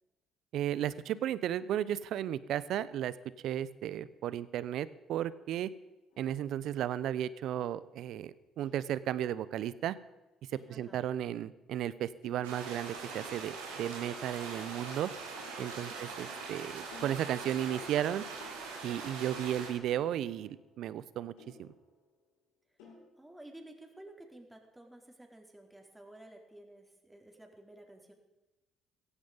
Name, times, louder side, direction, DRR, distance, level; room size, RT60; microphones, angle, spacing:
voice 1, 0.5-3.1 3.4-5.7 6.2-10.0 10.7-15.1 15.6-18.2 18.8-21.3 21.6-21.7, right 11 dB, 70° right, 18 dB, 0.8 m, -34 dB
sound 1, 6.1-7.1 8.6-9.6 10.5-11.7 12.2-13.1 13.8-14.8 15.3-16.6 16.9-17.9 18.4-19.4 19.9-22.3 22.8-23.0, left 3 dB, 80° left, 7.0 m, -59 dB
voice 2, 10.7-11.0 15.8-16.2 23.2-28.1, right 1 dB, 10° right, 1 dB, 4.5 m, -53 dB
sound 2, 12.4-19.7, right 4 dB, 85° right, 3.6 m, -42 dB
16.5 x 15.5 x 5.3 m, 1.1 s
hypercardioid pair, 55°, 0 cm